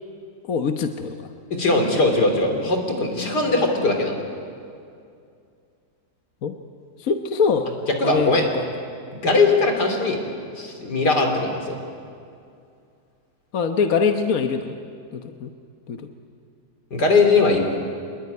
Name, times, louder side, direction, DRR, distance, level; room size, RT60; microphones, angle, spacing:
voice 1, 0.5-1.2 2.5-2.7 3.2-3.7 6.4-6.5 7.0-7.7 8.0-8.6 13.5-14.7 15.1-15.5 15.9-16.1, left 5 dB, 60° left, 5 dB, 1.4 m, -24 dB
voice 2, 1.5-4.2 8.0-8.4 9.1-10.2 10.6-11.8 16.9-17.6, left 3 dB, 80° left, 3 dB, 3.9 m, -20 dB
25.0 x 21.5 x 9.5 m, 2.4 s
omnidirectional pair, 1.8 m